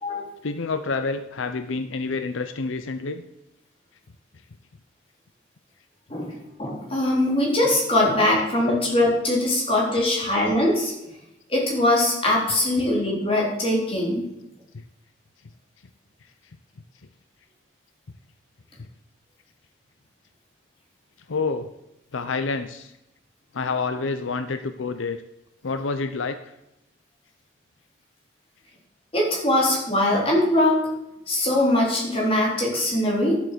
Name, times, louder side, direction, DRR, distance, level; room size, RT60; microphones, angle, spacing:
voice 1, 0.4-3.2 14.7-14.8 21.3-21.7 22.1-22.9 23.5-25.2 25.6-26.5, left 4 dB, 75° left, 10 dB, 0.6 m, -28 dB
voice 2, 6.1-10.9 11.5-14.2 29.1-30.8 31.3-33.4, left 1 dB, 30° left, -2 dB, 3.7 m, -22 dB
11.5 x 7.8 x 6.8 m, 0.88 s
head